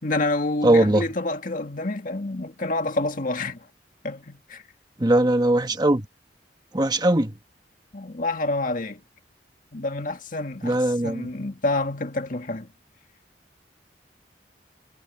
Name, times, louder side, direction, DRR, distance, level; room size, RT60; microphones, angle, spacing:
voice 1, 0.0-3.7 4.0-4.6 7.9-9.0 9.7-12.7, left 2 dB, 50° left, 1.9 m, -28 dB
voice 2, 0.6-1.0 5.0-6.1 6.7-7.3 10.6-11.3, right 1 dB, 25° right, 1.2 m, -20 dB
head